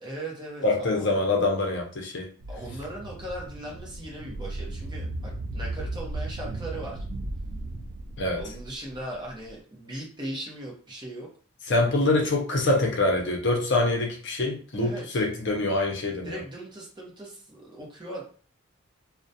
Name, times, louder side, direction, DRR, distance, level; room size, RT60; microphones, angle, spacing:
voice 1, 0.0-1.1 2.5-7.0 8.3-11.3 14.8-15.2 16.2-18.2, right 1 dB, 20° right, -3 dB, 0.7 m, -39 dB
voice 2, 0.6-2.3 8.2-8.5 11.7-16.4, left 2 dB, 55° left, 0 dB, 0.6 m, -25 dB
sound 1, 2.4-9.5, right 2 dB, 60° right, 0.3 m, -36 dB
2.3 x 2.1 x 2.6 m, 0.42 s
head